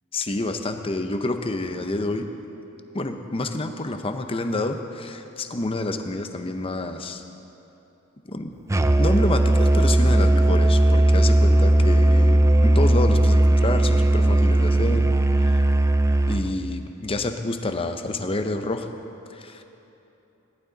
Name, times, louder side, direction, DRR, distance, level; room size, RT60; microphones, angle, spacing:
voice 1, 0.1-2.3 2.9-7.2 8.2-8.5 9.0-15.0 15.4-15.6 16.3-18.9 19.3-19.6, left 2 dB, 25° left, 7 dB, 0.7 m, -28 dB
Musical instrument, 8.7-16.5, right 1 dB, 15° right, 0.4 m, -18 dB
18.5 x 11.5 x 4.0 m, 3.0 s
head